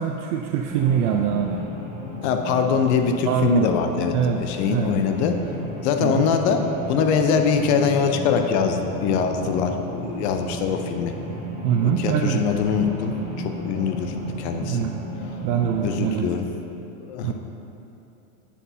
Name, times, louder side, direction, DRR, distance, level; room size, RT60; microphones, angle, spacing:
voice 1, 0.0-1.6 3.3-3.7 4.1-4.9 6.0-6.3 11.6-12.5 14.6-14.9 15.4-16.3 17.2-17.3, right 8 dB, 80° right, 3 dB, 0.5 m, -24 dB
sound 1, 0.7-15.9, equal, 15° right, 1.3 m, -34 dB
voice 2, 2.2-5.4 5.8-11.1 11.8-14.9 15.8-16.5 17.0-17.3, left 6 dB, 50° left, 5 dB, 0.5 m, -23 dB
8.3 x 5.6 x 2.7 m, 2.9 s
supercardioid pair, 155°, 44 cm